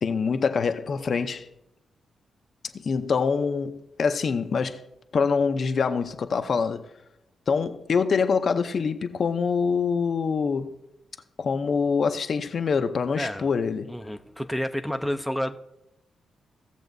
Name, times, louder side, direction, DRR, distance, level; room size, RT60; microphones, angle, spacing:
voice 1, 0.0-1.5 2.7-4.8 5.1-6.9 7.5-10.7 11.4-13.9, left 5 dB, 50° left, 0.6 m, -25 dB
voice 2, 13.2-13.5 13.9-15.6, equal, ahead, 0.5 m, -30 dB
17.0 x 7.0 x 2.6 m
cardioid pair, 105°, 0 cm